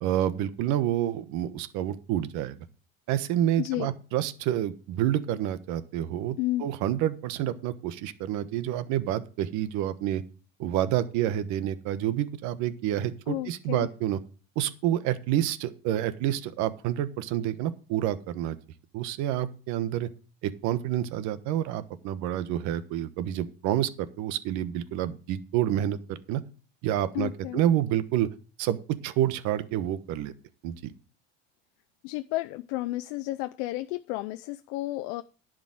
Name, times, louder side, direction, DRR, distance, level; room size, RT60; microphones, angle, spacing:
voice 1, 0.0-2.6 3.1-10.2 10.6-14.2 14.6-18.6 18.9-20.1 20.4-26.4 26.8-28.3 28.6-28.8 29.0-30.3 30.6-30.8, right 12 dB, 60° right, 1.2 m, -28 dB
voice 2, 3.6-3.9 6.4-6.7 13.3-13.9 27.1-27.6 32.0-35.2, left 17 dB, 70° left, 0.6 m, -32 dB
11.0 x 5.2 x 7.7 m
cardioid pair, 140°, 33 cm